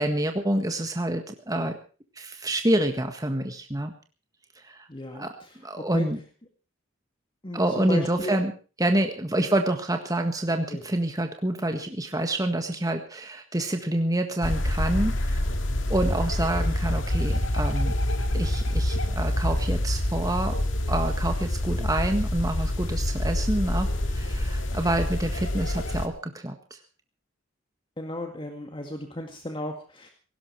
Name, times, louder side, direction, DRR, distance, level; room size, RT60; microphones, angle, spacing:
voice 1, 0.0-1.8 2.2-3.9 4.7-4.9 5.1-5.3 5.6-6.2 7.5-8.5 8.8-15.5 15.9-17.9 18.3-20.6 20.9-26.6, right 1 dB, 20° right, 5 dB, 1.7 m, -27 dB
voice 2, 4.9-5.6 5.9-6.1 7.4-8.4 9.4-9.5 10.7-10.8 28.0-30.1, left 1 dB, 25° left, 4 dB, 2.1 m, -35 dB
sound 1, 14.4-26.1, left 1 dB, 70° left, 2.1 m, -26 dB
17.5 x 17.5 x 4.6 m, 0.37 s
head